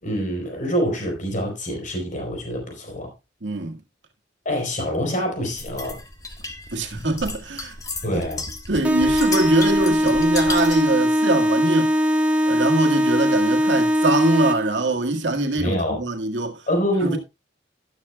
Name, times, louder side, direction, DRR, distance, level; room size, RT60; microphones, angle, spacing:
voice 1, 0.0-3.1 4.4-6.0 8.0-8.4 15.6-16.0 16.7-17.2, equal, 45° left, 4.2 m, -25 dB
voice 2, 3.4-3.8 6.7-7.8 8.0-8.2 8.7-12.0 12.5-16.6 17.0-17.2, right 2 dB, 75° right, 1.8 m, -23 dB
sound 1, 5.6-10.9, left 3 dB, 20° left, 1.5 m, -34 dB
sound 2, 8.8-14.8, equal, 10° right, 1.4 m, -20 dB
12.5 x 12.0 x 2.3 m
head